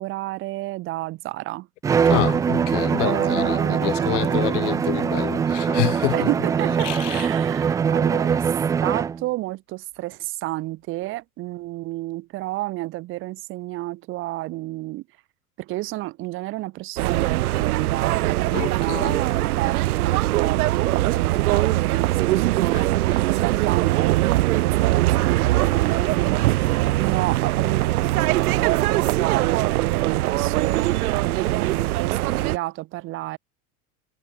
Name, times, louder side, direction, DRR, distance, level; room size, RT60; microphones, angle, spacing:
voice 1, 0.0-1.7 2.9-4.8 6.1-8.5 8.8-15.0 15.6-19.1 19.4-23.0 23.3-26.7 27.0-33.4, right 18 dB, 30° right, 1.7 m, -31 dB
Bowed string instrument, 1.8-9.2, right 7 dB, 10° right, 0.5 m, -22 dB
voice 2, 2.0-6.3 6.8-7.3 18.5-19.2 22.7-22.8, left 21 dB, 55° left, 1.4 m, -27 dB
sound 1, 17.0-32.6, right 16 dB, 85° right, 2.0 m, -21 dB
supercardioid pair, 180°, 43 cm